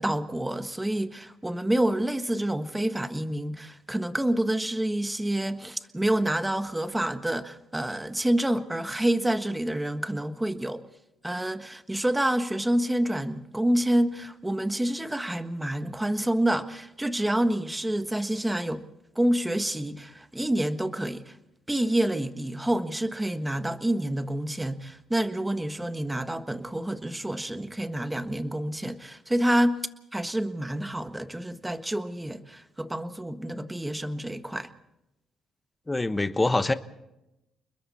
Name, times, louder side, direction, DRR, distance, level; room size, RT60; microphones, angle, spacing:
voice 1, 0.0-10.8 11.2-18.8 19.1-21.3 21.7-29.8 30.1-34.7, right 1 dB, 10° right, 1.4 m, -28 dB
voice 2, 35.9-36.7, left 2 dB, 15° left, 1.1 m, -24 dB
29.5 x 21.0 x 4.3 m
cardioid pair, 90°, 0 cm